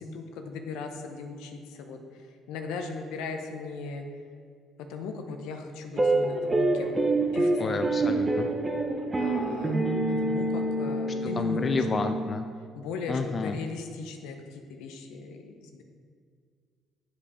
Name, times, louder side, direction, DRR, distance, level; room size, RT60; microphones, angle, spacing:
voice 1, 0.0-4.1 4.9-8.2 9.2-11.8 12.7-15.8, left 4 dB, 75° left, 5 dB, 0.7 m, -38 dB
sound 1, 6.0-12.5, right 2 dB, 25° right, 1.0 m, -27 dB
voice 2, 7.6-8.5 11.4-12.4 13.1-13.6, left 4 dB, 35° left, 7 dB, 0.4 m, -30 dB
7.1 x 5.2 x 4.8 m, 2.1 s
hypercardioid pair, 60°, 0 cm